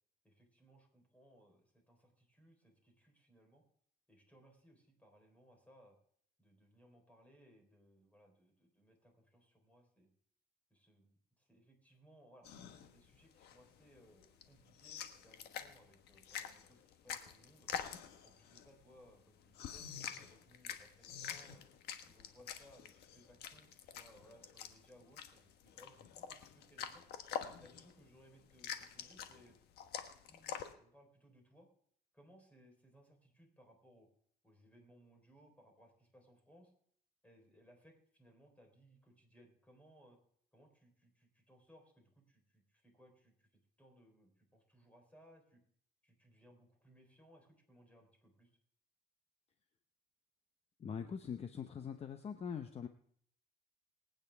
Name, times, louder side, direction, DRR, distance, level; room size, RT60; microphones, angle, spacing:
voice 1, 0.2-3.6 4.1-6.0 6.4-10.1 10.7-17.7 18.2-21.6 22.0-27.0 27.6-29.6 30.2-31.7 32.1-34.1 34.4-36.7 37.2-40.2 40.5-45.6 46.0-48.6, equal, 10° left, 3 dB, 3.9 m, -65 dB
sound 1, 12.4-30.7, left 8 dB, 75° left, 1.3 m, -47 dB
voice 2, 50.8-52.9, left 7 dB, 35° left, 8 dB, 0.8 m, -43 dB
23.5 x 9.2 x 3.4 m, 0.64 s
cardioid pair, 110°, 17 cm